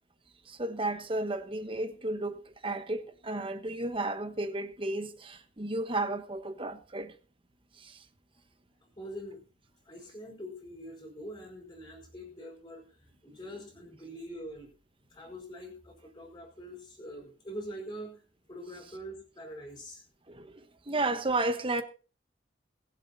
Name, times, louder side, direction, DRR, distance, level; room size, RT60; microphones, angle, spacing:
voice 1, 0.6-7.1 20.3-20.6 20.9-21.8, right 2 dB, 30° right, 1.2 m, -33 dB
voice 2, 9.0-9.4 9.8-14.7 15.1-18.2 18.5-20.0, equal, 20° left, 4.8 m, -44 dB
22.0 x 7.6 x 4.2 m
head